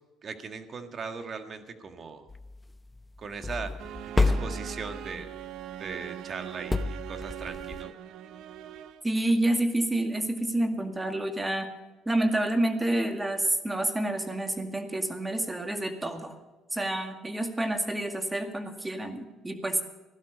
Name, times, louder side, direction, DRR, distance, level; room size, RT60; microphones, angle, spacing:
voice 1, 0.2-2.3 3.2-5.3 5.8-7.9, right 5 dB, 45° right, 7 dB, 1.7 m, -39 dB
sound 1, 2.3-5.5 6.7-7.8, left 3 dB, 15° left, 0.8 m, -30 dB
sound 2, 3.8-9.2, right 11 dB, 75° right, 0.8 m, -41 dB
voice 2, 9.0-11.7 12.1-16.4 16.7-19.8, right 1 dB, 15° right, 6 dB, 2.1 m, -28 dB
16.0 x 12.0 x 5.2 m, 1.1 s
supercardioid pair, 85°, 0 cm